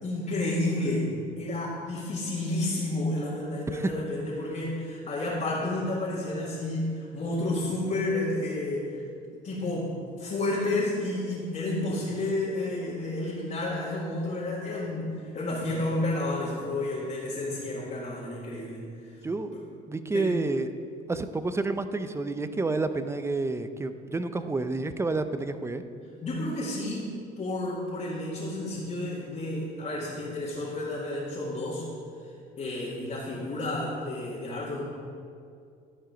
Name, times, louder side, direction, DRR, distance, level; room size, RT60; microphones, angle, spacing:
voice 1, 0.0-9.0 9.3-19.1 19.5-19.6 20.1-20.3 26.2-31.9 32.6-34.8, left 2 dB, 40° left, -7 dB, 2.1 m, -31 dB
voice 2, 19.9-20.7 21.1-25.8, right 3 dB, 15° right, 10 dB, 0.5 m, -29 dB
12.0 x 4.8 x 5.1 m, 2.3 s
cardioid pair, 95°, 19 cm